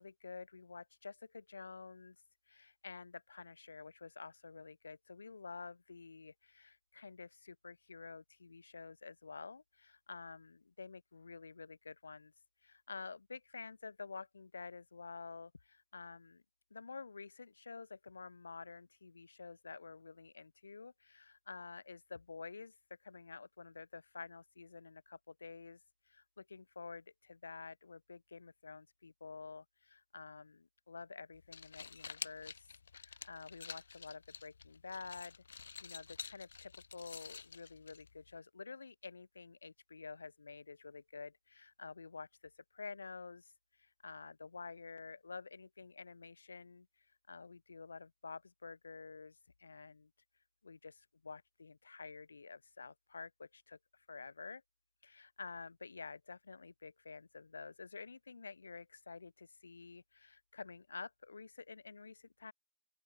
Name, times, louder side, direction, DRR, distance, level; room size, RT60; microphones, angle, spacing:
voice 1, 0.0-2.2 2.5-12.3 12.6-16.4 16.7-22.7 23.0-25.8 26.1-32.7 32.9-50.1 50.6-54.6 55.0-62.5, left 4 dB, 75° left, 0.9 m, -50 dB
sound 1, 31.3-38.4, left 6 dB, 55° left, 0.3 m, -50 dB
open air
hypercardioid pair, 170°, 0 cm